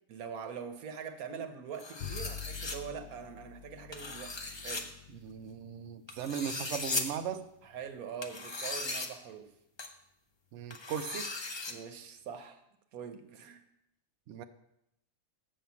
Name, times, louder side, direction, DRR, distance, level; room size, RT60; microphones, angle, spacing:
voice 1, 0.1-5.0 7.6-9.5 11.7-12.6 12.9-13.6, right 7 dB, 90° right, 8 dB, 1.3 m, -43 dB
sound 1, 1.8-2.8 3.9-4.8 6.1-7.0 8.2-9.1 9.8-9.9 10.7-11.7, left 3 dB, 30° left, 0.5 m, -37 dB
Bowed string instrument, 2.0-8.5, left 9 dB, 70° left, 1.0 m, -48 dB
voice 2, 5.2-7.4 10.5-11.3 14.3-14.4, right 8 dB, 65° right, 9 dB, 0.8 m, -38 dB
7.6 x 5.4 x 7.0 m, 0.81 s
omnidirectional pair, 1.5 m